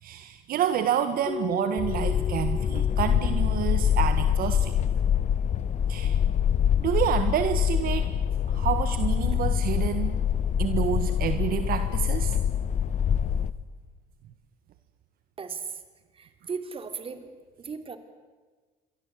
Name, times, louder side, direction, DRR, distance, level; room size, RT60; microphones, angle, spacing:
voice 1, 0.0-4.7 5.9-6.2 6.8-8.1 8.5-10.2 10.6-12.4, right 10 dB, 60° right, 9 dB, 1.6 m, -28 dB
Keyboard (musical), 1.3-4.1, left 4 dB, 30° left, 2.2 m, -37 dB
sound 1, 1.8-13.5, left 8 dB, 45° left, 1.3 m, -25 dB
voice 2, 15.4-15.8 16.1-18.0, right 5 dB, 35° right, 8 dB, 3.5 m, -37 dB
27.5 x 23.5 x 8.5 m, 1.4 s
cardioid pair, 105°, 17 cm